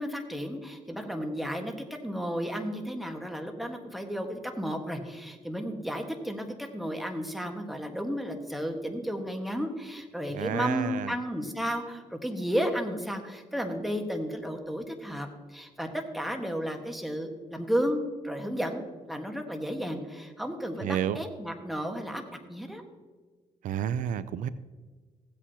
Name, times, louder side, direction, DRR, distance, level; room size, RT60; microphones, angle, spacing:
voice 1, 0.0-18.0 18.2-18.8 19.1-22.2 22.5-22.8, equal, ahead, 4 dB, 1.4 m, -33 dB
voice 2, 10.3-11.1 20.8-21.2 23.6-24.5, right 9 dB, 80° right, 15 dB, 0.4 m, -30 dB
16.0 x 8.4 x 2.8 m, 1.4 s
cardioid pair, 85°, 13 cm